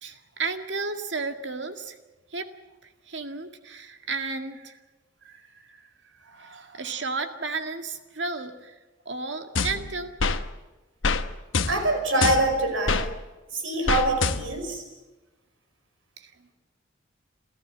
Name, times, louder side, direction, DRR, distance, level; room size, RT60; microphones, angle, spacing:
voice 1, 0.0-2.0 2.3-2.5 2.8-4.8 5.2-8.8 9.1-10.1 11.6-11.7 16.2-16.5, right 4 dB, 65° right, 7 dB, 2.0 m, -34 dB
sound 1, 9.5-10.4 11.0-11.2 11.5-13.1 13.9-14.7, left 4 dB, 80° left, 1.1 m, -26 dB
voice 2, 11.7-13.1 13.5-14.8, right 2 dB, 90° right, 5 dB, 5.6 m, -25 dB
28.5 x 14.0 x 8.7 m, 1.1 s
head